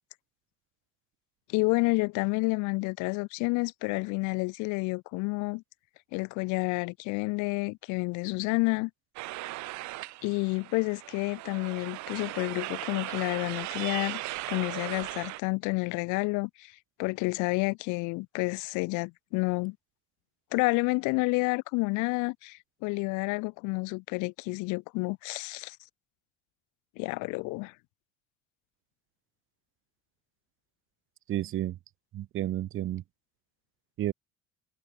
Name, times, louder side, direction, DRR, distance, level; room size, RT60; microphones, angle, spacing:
voice 1, 1.5-5.6 6.1-8.9 10.2-14.2 14.5-16.7 17.0-19.7 20.5-25.7 27.0-27.7, left 27 dB, 85° left, 1.6 m, -29 dB
sound 1, 9.2-15.4, right 20 dB, 70° right, 3.4 m, -38 dB
voice 2, 31.3-31.8 32.1-33.0 34.0-34.1, right 13 dB, 45° right, 0.8 m, -31 dB
cardioid pair, 135°, 29 cm